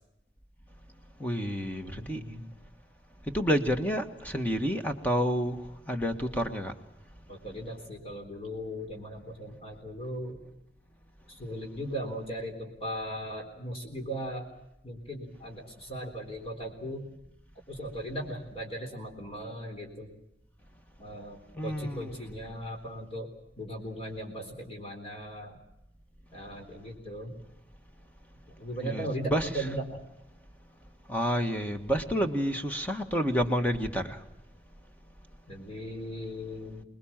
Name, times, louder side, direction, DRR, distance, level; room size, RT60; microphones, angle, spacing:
voice 1, 1.2-2.2 3.3-5.6 5.9-6.7 21.5-22.2 28.8-29.5 31.1-34.2, equal, 10° left, 5 dB, 1.7 m, -29 dB
voice 2, 1.9-2.4 7.3-10.4 11.3-14.5 14.8-17.0 17.7-20.1 21.0-23.3 23.6-25.6 26.3-27.3 28.6-30.0 32.1-32.2 35.5-36.8, equal, 35° left, 1 dB, 4.0 m, -38 dB
25.5 x 21.0 x 7.4 m, 0.86 s
head